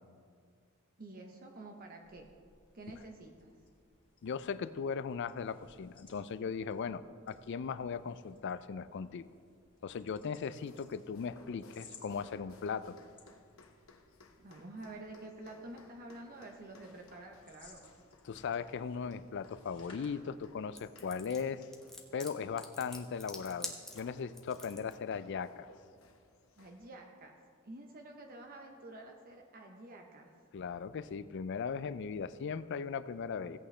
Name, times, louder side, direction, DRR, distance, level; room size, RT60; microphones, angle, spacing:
voice 1, 1.0-2.3 2.7-3.5 14.4-17.8 26.6-27.4 27.6-30.3, right 2 dB, 45° right, 1 dB, 0.8 m, -49 dB
sound 1, 2.0-20.9, left 4 dB, 25° left, 2.5 m, -63 dB
voice 2, 4.2-9.3 9.8-13.0 18.2-21.6 22.1-25.7 30.5-33.6, left 6 dB, 60° left, 15 dB, 0.4 m, -38 dB
sound 2, 10.6-26.9, left 2 dB, 75° left, 0.9 m, -61 dB
sound 3, 20.8-24.9, left 1 dB, ahead, 0.9 m, -46 dB
16.5 x 8.5 x 3.3 m, 2.1 s
head